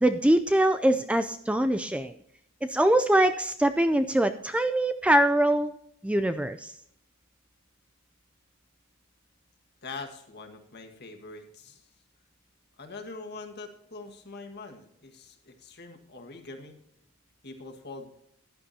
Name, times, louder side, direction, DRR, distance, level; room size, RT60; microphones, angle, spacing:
voice 1, 0.0-2.1 2.6-5.7 6.0-6.7, right 1 dB, 5° right, 9 dB, 0.4 m, -23 dB
voice 2, 9.8-11.8 12.8-16.8 17.4-18.2, left 3 dB, 50° left, 5 dB, 1.7 m, -43 dB
15.0 x 11.0 x 2.8 m, 0.72 s
head